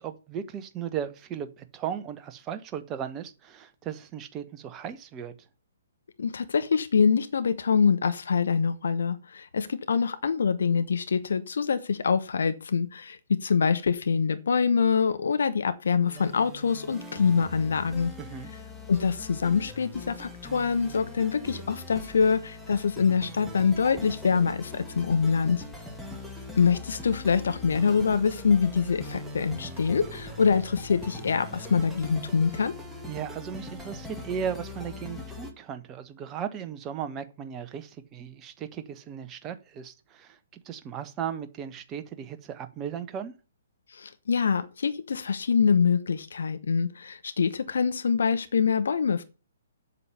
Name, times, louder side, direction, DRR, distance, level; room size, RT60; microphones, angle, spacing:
voice 1, 0.0-5.3 18.2-18.5 33.1-43.3, right 8 dB, 20° right, 1.1 m, -36 dB
voice 2, 6.2-18.1 18.9-25.6 26.6-32.7 43.9-49.2, left 6 dB, 60° left, 1.0 m, -25 dB
sound 1, 16.1-35.5, left 2 dB, ahead, 1.7 m, -41 dB
8.3 x 7.4 x 6.8 m
figure-of-eight pair, 125°, 0 cm